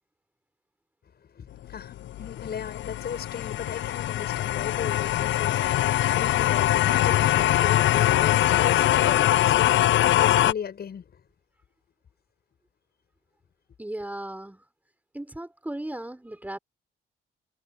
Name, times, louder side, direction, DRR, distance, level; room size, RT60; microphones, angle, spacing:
voice 1, 1.3-11.2, left 7 dB, 55° left, 7.2 m, -36 dB
sound 1, 1.7-10.5, left 13 dB, 75° left, 0.7 m, -22 dB
voice 2, 13.8-14.6 15.1-16.6, right 1 dB, 10° right, 4.9 m, -36 dB
cardioid pair, 90°, 20 cm